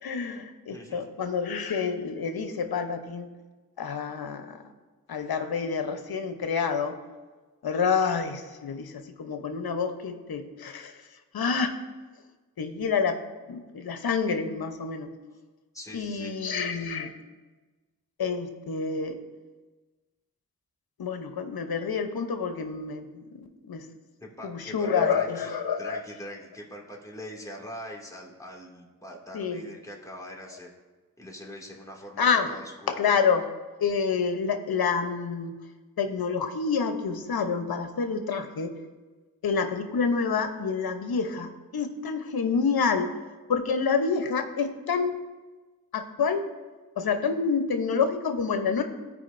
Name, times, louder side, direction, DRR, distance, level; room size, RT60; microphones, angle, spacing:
voice 1, 0.0-3.3 3.8-4.6 5.1-7.0 7.6-11.1 11.3-11.8 12.6-13.2 13.5-15.1 15.9-17.1 18.2-19.2 21.0-23.9 24.4-26.0 29.3-29.6 32.2-32.5 32.9-33.5 33.8-35.6 36.0-38.7 39.4-43.1 43.5-45.2 45.9-46.4 47.0-48.8, left 5 dB, 70° left, 7 dB, 1.0 m, -28 dB
voice 2, 0.7-1.0 15.7-16.4 24.2-25.5 25.8-30.7 31.2-33.0, equal, 10° left, -2 dB, 2.4 m, -43 dB
15.0 x 5.1 x 2.7 m, 1.3 s
cardioid pair, 40°, 38 cm